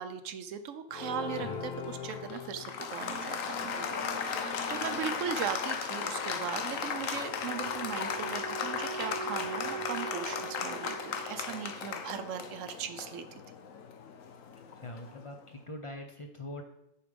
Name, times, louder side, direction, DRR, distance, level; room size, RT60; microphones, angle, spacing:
voice 1, 0.0-13.4, right 8 dB, 75° right, 10 dB, 1.0 m, -39 dB
Applause, 0.9-15.3, left 6 dB, 80° left, 1.1 m, -36 dB
sound 1, 3.0-9.9, equal, 10° left, 1.1 m, -47 dB
Wind instrument woodwind instrument, 7.2-12.2, right 6 dB, 40° right, 0.5 m, -43 dB
voice 2, 14.8-16.6, left 1 dB, 35° left, 4 dB, 0.6 m, -43 dB
7.0 x 4.7 x 5.1 m, 0.79 s
omnidirectional pair, 1.4 m